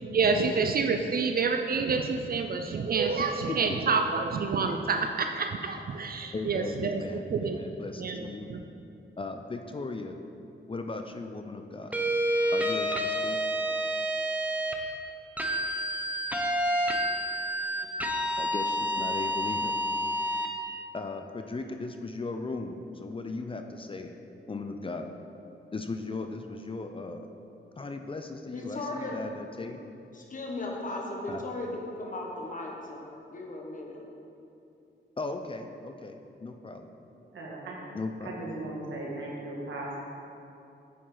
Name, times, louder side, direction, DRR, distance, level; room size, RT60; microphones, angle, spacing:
voice 1, 0.1-7.6 8.0-8.6, right 4 dB, 50° right, 5 dB, 0.5 m, -28 dB
voice 2, 3.2-3.8 6.3-8.5 9.2-10.1 10.7-11.9 12.5-13.4 18.4-19.7 20.9-24.2 24.5-25.1 25.7-27.3 27.8-29.8 31.3-31.4 35.2-36.9 37.9-38.3, left 3 dB, 30° left, 6 dB, 0.5 m, -37 dB
sound 1, 11.9-14.8 15.4-20.5, equal, 10° right, 0.8 m, -29 dB
voice 3, 28.5-29.2 30.1-34.0, left 2 dB, 45° left, -1 dB, 1.3 m, -37 dB
voice 4, 37.3-37.8 38.2-40.0, right 2 dB, 80° right, -3 dB, 1.7 m, -37 dB
8.1 x 7.5 x 3.9 m, 2.8 s
cardioid pair, 95°, 19 cm